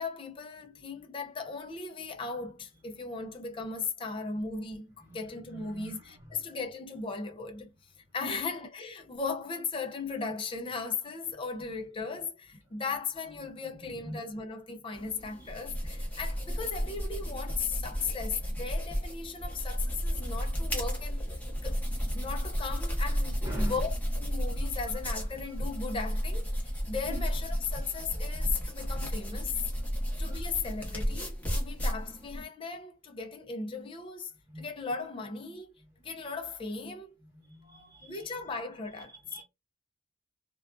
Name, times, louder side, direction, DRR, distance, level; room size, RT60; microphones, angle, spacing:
voice 1, 0.0-7.7 8.1-21.3 21.6-29.6 30.2-35.7 36.0-37.2 38.0-39.2, left 4 dB, 25° left, 0.4 m, -37 dB
voice 2, 5.5-6.1 8.2-8.4 14.0-14.2 15.4-15.5 23.4-23.8 27.1-27.3 29.9-30.2 34.5-34.6 37.5-38.2 39.3-39.4, right 1 dB, 20° right, 1.0 m, -43 dB
sound 1, 14.9-32.4, equal, 10° left, 0.8 m, -33 dB
2.4 x 2.2 x 2.3 m
head